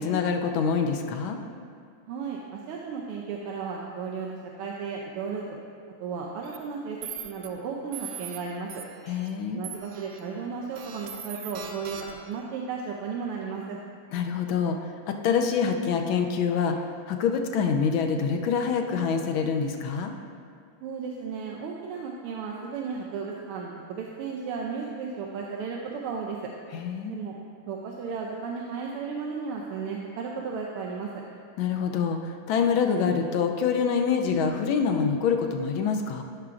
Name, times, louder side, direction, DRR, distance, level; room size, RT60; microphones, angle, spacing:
voice 1, 0.0-1.4 9.1-9.6 14.1-20.1 26.7-27.2 31.6-36.2, left 6 dB, 80° left, 4 dB, 1.4 m, -26 dB
voice 2, 2.1-5.4 6.0-7.0 7.2-8.8 9.5-13.8 20.8-26.5 27.1-27.4 27.7-31.2, right 5 dB, 90° right, -1 dB, 1.6 m, -34 dB
sound 1, 6.4-6.6 7.0-7.5 7.9-8.4 8.7-9.3 9.6-10.2 10.8-12.3, right 8 dB, 70° right, 1.3 m, -40 dB
13.5 x 5.8 x 2.5 m, 2.2 s
omnidirectional pair, 2.4 m